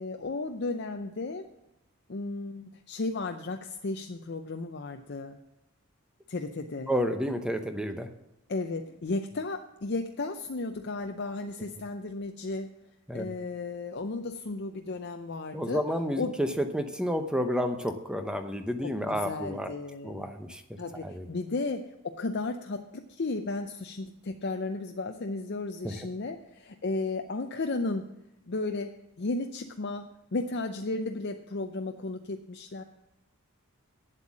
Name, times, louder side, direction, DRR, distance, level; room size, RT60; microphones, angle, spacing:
voice 1, 0.0-1.5 2.1-5.4 6.3-6.9 8.5-12.7 13.1-15.8 16.2-16.3 18.8-20.3 20.8-28.0 28.5-32.8, left 3 dB, 50° left, 6 dB, 0.6 m, -34 dB
voice 2, 6.9-8.1 13.1-13.3 15.5-19.7 20.0-20.6 21.0-21.3 25.8-25.9, equal, 5° right, 7 dB, 0.8 m, -30 dB
9.1 x 7.8 x 7.4 m, 0.92 s
head